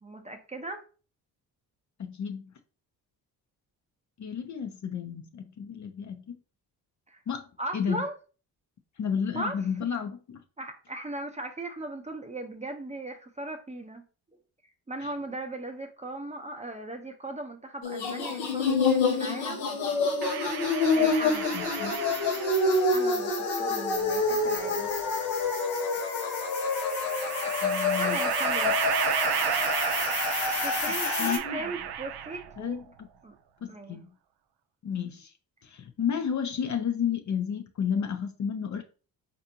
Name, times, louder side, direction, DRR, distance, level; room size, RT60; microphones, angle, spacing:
voice 1, 0.0-0.8 7.1-7.2 7.6-8.2 9.3-9.6 10.6-14.0 14.9-19.7 20.9-21.5 22.9-24.9 28.0-28.8 30.6-32.8 33.2-33.3 33.7-34.0, right 2 dB, 15° right, 0.7 m, -38 dB
voice 2, 2.0-2.5 4.2-6.3 7.3-7.4 7.7-8.1 9.0-10.4 15.0-15.1 21.5-22.1 27.6-28.2 30.9-31.0 31.2-31.6 32.6-33.1 33.6-34.1 34.8-35.3 35.6-38.8, left 7 dB, 40° left, 0.6 m, -32 dB
sound 1, 17.8-31.4, left 3 dB, 85° left, 0.9 m, -27 dB
sound 2, 20.2-22.9 24.0-25.0 26.6-32.6, right 9 dB, 60° right, 0.6 m, -32 dB
4.1 x 2.6 x 2.7 m
supercardioid pair, 50°, 45 cm